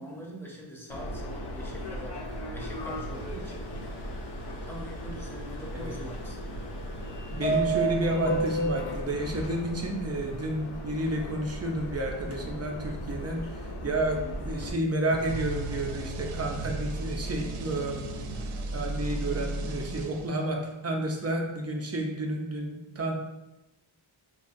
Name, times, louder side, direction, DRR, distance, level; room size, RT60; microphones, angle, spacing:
voice 1, 0.0-2.2 2.5-4.2 4.6-6.6 10.2-10.5, equal, 5° left, -3 dB, 0.7 m, -43 dB
Subway metro underground, 0.9-14.7, right 2 dB, 55° left, 0.5 m, -35 dB
voice 2, 7.3-18.0 18.7-23.1, right 1 dB, 35° right, 1 dB, 0.5 m, -31 dB
sound 1, 15.1-20.6, right 2 dB, 85° right, 0.6 m, -35 dB
5.2 x 2.1 x 2.5 m, 1.0 s
wide cardioid pair, 125°, 49 cm